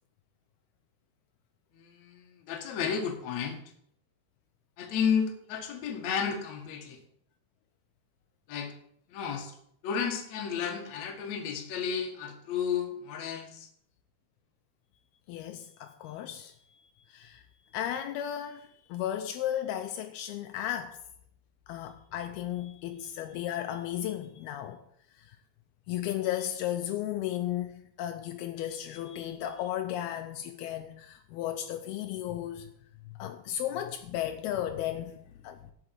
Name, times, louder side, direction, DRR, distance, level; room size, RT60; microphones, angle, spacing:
voice 1, 1.8-3.6 4.8-7.0 8.5-8.7 9.1-9.5 9.8-13.7, left 7 dB, 55° left, 2.4 m, -32 dB
voice 2, 15.3-17.4 17.7-21.0 21.7-24.8 25.1-25.4 25.9-32.7 33.0-35.7, left 11 dB, 80° left, 2.6 m, -35 dB
8.6 x 7.1 x 7.9 m
omnidirectional pair, 4.6 m